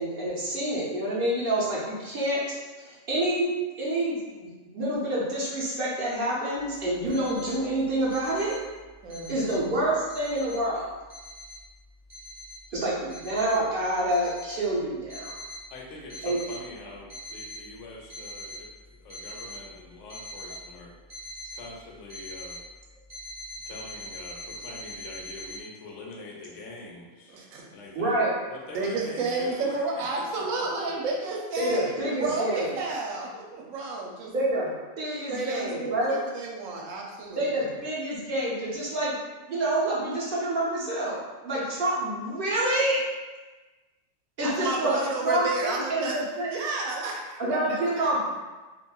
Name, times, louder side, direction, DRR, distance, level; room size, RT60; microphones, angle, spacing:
voice 1, 0.0-2.4 2.8-3.5 3.8-8.5 9.3-10.9 12.7-15.3 16.2-16.4 27.9-28.3 31.6-32.7 34.3-34.7 35.0-36.2 37.4-39.2 39.5-43.0 44.4-46.5 47.4-48.3, right 1 dB, 50° right, -7 dB, 0.8 m, -27 dB
sound 1, 6.9-7.6 8.0-8.6 8.9-9.6 10.1-10.6 11.1-11.6 12.1-12.6 13.1-13.6 14.1-14.6 15.1-15.6 16.1-16.6 17.0-17.6 18.1-18.6 19.1-19.6 20.1-20.6 21.1-21.6 22.1-22.6 23.1-25.6, left 1 dB, 30° right, 1.0 m, -42 dB
voice 2, 9.0-9.7 27.3-27.6 28.7-34.3 35.1-37.5 44.4-46.2 46.5-48.3, right 3 dB, 90° right, -1 dB, 1.0 m, -31 dB
voice 3, 15.7-20.9 21.5-22.6 23.7-27.4 27.7-28.2 28.5-30.0 30.3-30.9, left 2 dB, 70° left, -2 dB, 0.9 m, -44 dB
3.0 x 2.4 x 2.3 m, 1.2 s
omnidirectional pair, 1.4 m